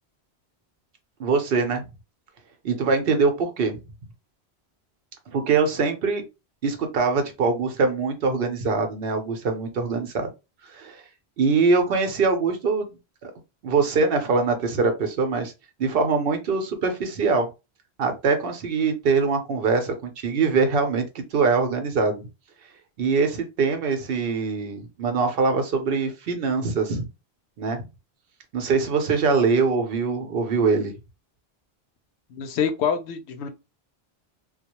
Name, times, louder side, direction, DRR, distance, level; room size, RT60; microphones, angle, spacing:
voice 1, 1.2-1.9 2.6-3.8 5.3-6.2 6.6-10.3 10.7-11.0 11.4-13.3 13.6-15.5 15.8-17.5 18.0-22.3 23.0-27.0 27.6-27.8 28.5-30.9, right 4 dB, 65° right, 0.8 m, -23 dB
voice 2, 32.3-33.5, left 7 dB, 85° left, 0.8 m, -26 dB
2.2 x 2.0 x 2.9 m
omnidirectional pair, 1.1 m